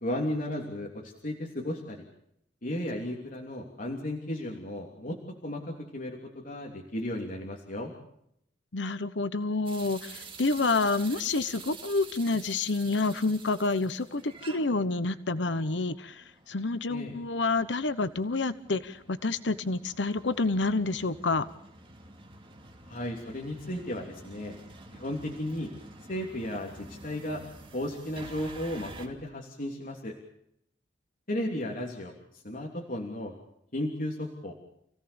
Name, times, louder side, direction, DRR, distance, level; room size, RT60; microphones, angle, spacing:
voice 1, 0.0-2.0 2.6-5.2 5.4-7.9 16.9-17.1 22.9-24.6 24.9-25.7 26.1-27.4 27.7-30.2 31.3-32.1 32.4-33.4 33.7-34.5, left 1 dB, 50° left, 0 dB, 3.1 m, -34 dB
voice 2, 8.7-21.5, left 3 dB, 90° left, 13 dB, 1.1 m, -28 dB
sound 1, 9.7-29.1, right 3 dB, 30° right, 2.8 m, -49 dB
29.0 x 17.0 x 7.1 m, 0.76 s
head